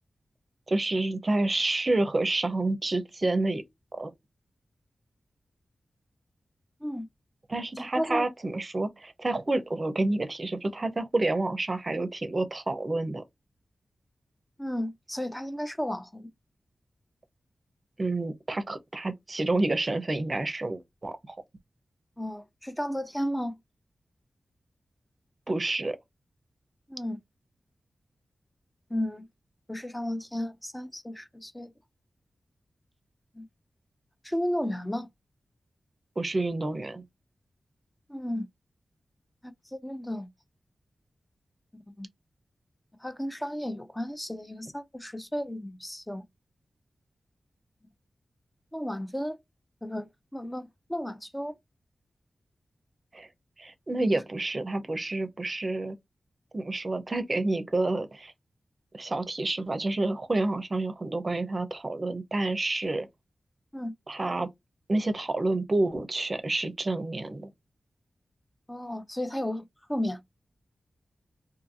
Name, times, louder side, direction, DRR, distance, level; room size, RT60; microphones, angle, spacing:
voice 1, 0.7-3.6 4.0-4.1 7.5-13.2 18.0-21.2 25.5-26.0 36.2-37.0 53.1-53.3 53.6-56.0 56.5-58.3 58.9-63.1 64.1-64.5 64.9-67.5, right 2 dB, 45° right, 0.6 m, -29 dB
voice 2, 7.8-8.3 14.6-16.3 22.2-23.6 26.9-27.2 28.9-29.3 29.7-31.7 33.3-33.5 34.2-35.1 38.1-38.5 39.4-40.3 42.0-42.1 43.0-46.2 48.7-49.4 49.8-51.5 54.1-54.2 63.7-63.9 68.7-70.2, equal, 15° left, 0.5 m, -33 dB
2.7 x 2.6 x 2.5 m
cardioid pair, 50°, 0 cm